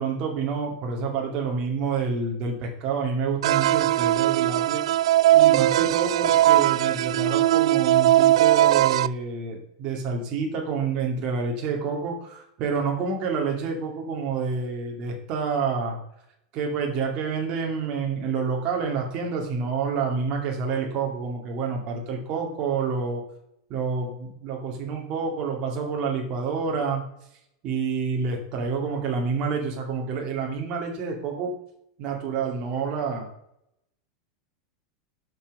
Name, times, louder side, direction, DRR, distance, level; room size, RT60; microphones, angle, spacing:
voice 1, 0.0-4.8 5.3-16.0 16.5-23.2 23.7-27.0 27.6-31.5 32.0-33.3, right 5 dB, 30° right, 1 dB, 2.2 m, -28 dB
sound 1, 3.4-9.1, right 14 dB, 90° right, 0.4 m, -19 dB
12.5 x 5.8 x 5.4 m, 0.76 s
supercardioid pair, 180°, 3 cm